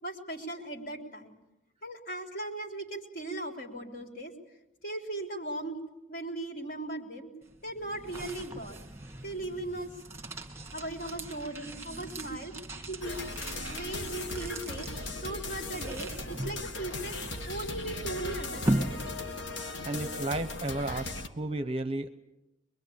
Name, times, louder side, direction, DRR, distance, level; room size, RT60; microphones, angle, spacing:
voice 1, 0.0-1.3 1.8-4.3 4.8-5.8 6.1-7.3 7.6-8.8 9.2-9.9 10.7-13.2 13.7-14.9 15.2-17.2 17.5-19.0, right 2 dB, 45° left, 2 dB, 3.6 m, -38 dB
sound 1, 7.4-19.6, right 1 dB, 15° right, 2.0 m, -38 dB
sound 2, 13.0-21.3, left 2 dB, 65° left, 1.7 m, -38 dB
voice 2, 19.8-22.1, right 2 dB, 30° right, 10 dB, 0.9 m, -33 dB
24.5 x 22.5 x 8.7 m, 0.93 s
head